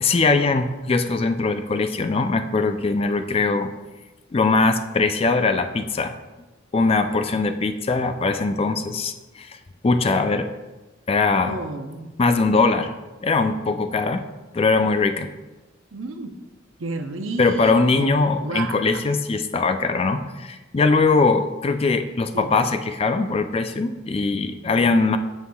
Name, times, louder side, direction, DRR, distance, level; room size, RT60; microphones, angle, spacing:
voice 1, 0.0-3.7 4.3-6.2 6.7-9.6 9.8-10.5 11.1-11.6 12.2-12.9 13.2-14.3 14.5-15.3 17.4-25.2, left 3 dB, 30° left, 8 dB, 0.4 m, -21 dB
voice 2, 11.4-12.1 15.9-16.3 16.8-19.1 22.3-22.5, right 2 dB, 85° right, 7 dB, 0.7 m, -32 dB
12.5 x 5.5 x 2.3 m, 1.1 s
head